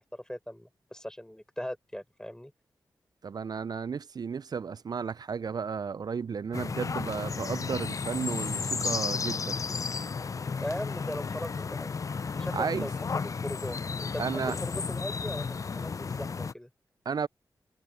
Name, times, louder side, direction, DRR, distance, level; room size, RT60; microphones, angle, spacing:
voice 1, 0.0-2.5 10.6-16.7, left 1 dB, 10° left, 4.7 m, -39 dB
voice 2, 3.2-9.6 12.5-12.9 14.2-14.6 17.1-17.3, right 6 dB, 55° right, 0.4 m, -33 dB
sound 1, 6.5-16.5, left 5 dB, 40° left, 0.3 m, -33 dB
cardioid pair, 45°, 8 cm